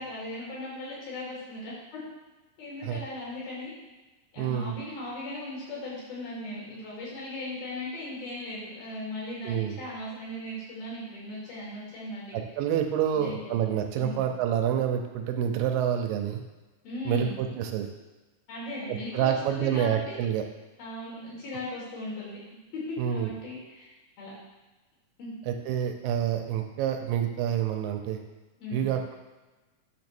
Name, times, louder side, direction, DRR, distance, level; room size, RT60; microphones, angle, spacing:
voice 1, 0.0-2.0 2.6-3.7 4.3-12.4 13.1-13.5 13.9-14.2 16.8-17.4 18.5-20.2 20.8-22.4 22.7-23.9 24.2-24.3 25.2-25.4 28.6-28.9, left 1 dB, 85° left, -7 dB, 4.8 m, -38 dB
voice 2, 4.4-4.8 9.4-9.8 12.3-16.4 17.1-17.9 18.9-20.4 23.0-23.3 25.5-28.2 28.7-29.2, right 9 dB, 80° right, 4 dB, 2.4 m, -28 dB
9.4 x 3.2 x 6.1 m, 1.2 s
omnidirectional pair, 4.1 m